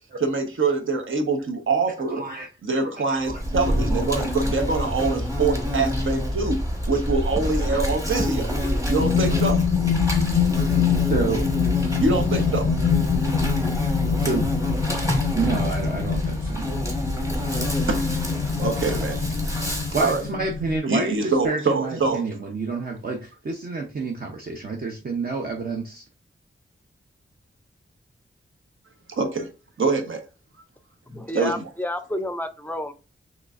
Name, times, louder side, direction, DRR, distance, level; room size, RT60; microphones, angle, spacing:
voice 1, 0.2-2.2 2.6-6.6 6.9-8.5 8.9-9.6 12.0-12.7 17.9-18.0 18.6-19.2 20.0-20.2 20.9-22.2 29.1-29.5 29.8-30.2 31.3-31.6, right 3 dB, 75° right, 1.0 m, -24 dB
voice 2, 2.2-3.4 7.6-7.7 11.1-11.5 14.2-14.5 15.3-16.7 19.9-26.0, right 3 dB, 45° right, 0.7 m, -29 dB
Insect, 3.2-20.3, equal, 15° right, 1.2 m, -26 dB
sound 1, 9.0-20.8, left 8 dB, 65° left, 0.4 m, -25 dB
voice 3, 31.1-32.9, left 1 dB, 10° left, 0.5 m, -30 dB
6.0 x 3.1 x 2.4 m
wide cardioid pair, 115°, 21 cm